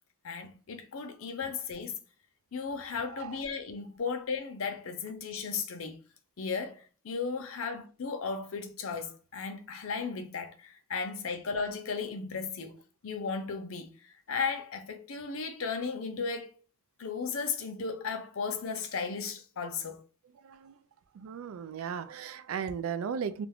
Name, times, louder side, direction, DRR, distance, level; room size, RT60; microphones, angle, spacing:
voice 1, 0.2-1.9 2.5-6.0 6.4-16.5 17.0-20.0, left 5 dB, 75° left, 0.5 m, -35 dB
voice 2, 20.4-20.7 21.1-23.5, right 7 dB, 90° right, 0.3 m, -36 dB
2.4 x 2.3 x 3.4 m
head